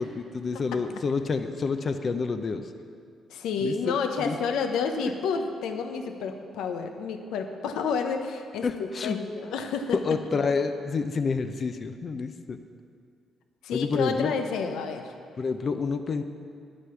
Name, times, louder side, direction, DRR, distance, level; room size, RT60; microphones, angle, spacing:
voice 1, 0.0-2.7 3.6-4.4 8.6-9.2 9.9-12.6 13.7-14.3 15.4-16.2, left 4 dB, 45° left, 8 dB, 0.6 m, -28 dB
voice 2, 3.3-10.0 13.6-15.1, left 5 dB, 85° left, 6 dB, 0.9 m, -30 dB
10.0 x 8.1 x 6.9 m, 2.3 s
cardioid pair, 90°, 0 cm